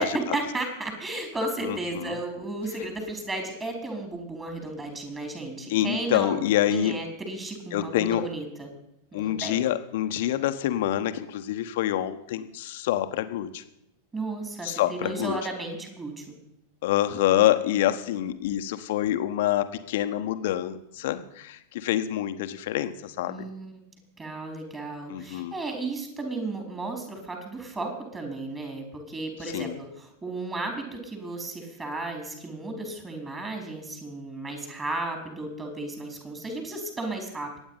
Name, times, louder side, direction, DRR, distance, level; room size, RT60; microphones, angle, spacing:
voice 1, 0.0-8.7 9.1-9.6 14.1-16.2 23.3-23.8 24.2-37.5, right 2 dB, 15° right, 4 dB, 4.3 m, -34 dB
voice 2, 1.6-2.2 5.7-6.9 7.7-8.3 9.1-13.6 14.6-15.4 16.8-23.5 25.1-25.5 29.4-29.7, left 12 dB, 55° left, 10 dB, 1.3 m, -26 dB
23.5 x 9.4 x 5.7 m, 0.79 s
figure-of-eight pair, 90°, 0 cm